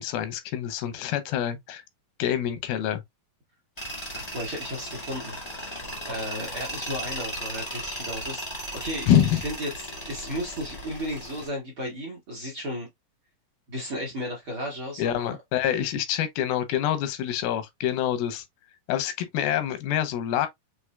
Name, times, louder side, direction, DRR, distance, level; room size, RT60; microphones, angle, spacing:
voice 1, 0.0-1.8 2.2-3.0 9.1-9.4 15.0-18.4 18.9-20.5, left 10 dB, 85° left, 2.6 m, -26 dB
Tools, 3.8-11.5, equal, 30° left, 0.7 m, -36 dB
voice 2, 4.3-5.4 5.7-12.9 13.7-15.3, equal, 55° right, 1.5 m, -34 dB
6.1 x 3.1 x 2.2 m
omnidirectional pair, 4.2 m